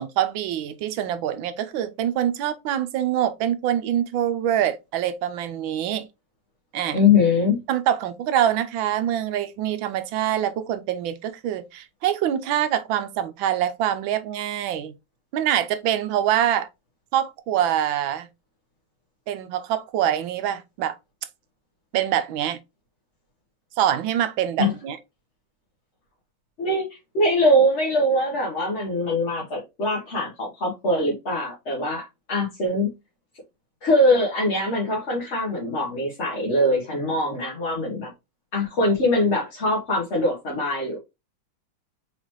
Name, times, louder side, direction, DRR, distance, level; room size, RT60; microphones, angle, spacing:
voice 1, 0.0-6.1 6.7-7.0 7.7-14.9 15.3-16.7 17.1-18.3 19.3-21.0 21.9-22.6 23.8-25.0, right 10 dB, 85° right, 1.4 m, -25 dB
voice 2, 6.9-7.6 24.6-24.7 26.6-32.9 33.8-38.1 38.5-41.0, left 1 dB, 40° left, 1.5 m, -22 dB
4.2 x 4.0 x 3.0 m
omnidirectional pair, 2.1 m